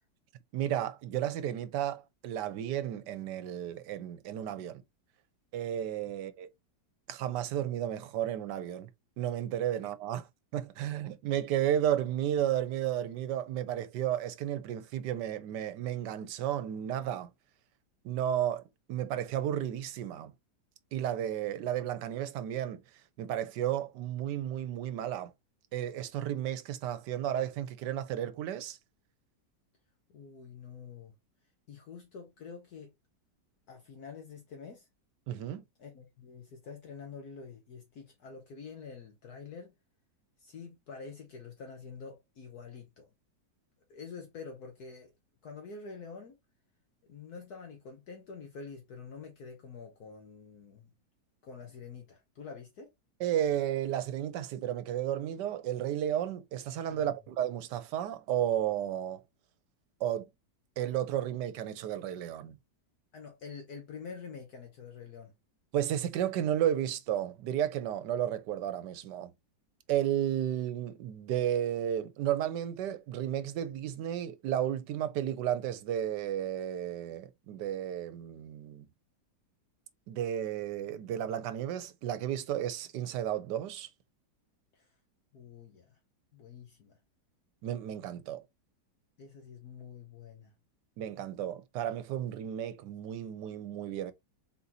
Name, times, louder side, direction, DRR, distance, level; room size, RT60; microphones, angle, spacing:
voice 1, 0.5-4.8 5.5-6.5 7.1-8.9 9.2-10.3 10.5-17.3 18.0-18.6 18.9-20.3 20.9-22.8 23.2-25.3 25.7-28.8 35.3-35.6 53.2-59.2 60.0-60.3 60.8-62.6 65.7-69.3 69.9-78.9 80.1-83.9 87.6-88.4 91.0-94.1, right 11 dB, 80° right, 1.3 m, -33 dB
voice 2, 30.1-31.1 31.7-32.9 33.7-34.9 35.8-39.7 40.4-43.1 43.9-45.1 45.4-46.3 47.0-50.9 51.4-52.9 56.9-57.1 63.1-65.3 84.7-84.9 85.3-86.0 86.3-86.9 89.2-90.5, left 5 dB, 65° left, 1.4 m, -47 dB
4.0 x 4.0 x 2.8 m
omnidirectional pair, 1.9 m